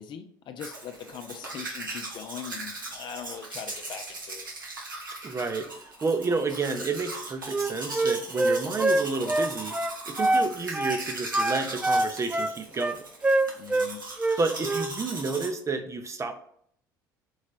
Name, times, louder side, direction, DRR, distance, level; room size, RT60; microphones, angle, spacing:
voice 1, 0.0-4.5 13.6-14.0, left 8 dB, 45° left, 7 dB, 0.6 m, -41 dB
Domestic sounds home sounds, 0.6-15.5, right 2 dB, 90° right, 1.0 m, -39 dB
voice 2, 5.2-9.7 10.1-13.0 14.4-16.3, right 4 dB, 30° right, 7 dB, 0.7 m, -30 dB
Wind instrument woodwind instrument, 7.5-10.5 10.7-11.0 11.3-13.9 14.2-14.9, right 2 dB, 10° right, 0.4 m, -25 dB
4.8 x 4.1 x 2.5 m, 0.66 s
figure-of-eight pair, 60°, 11 cm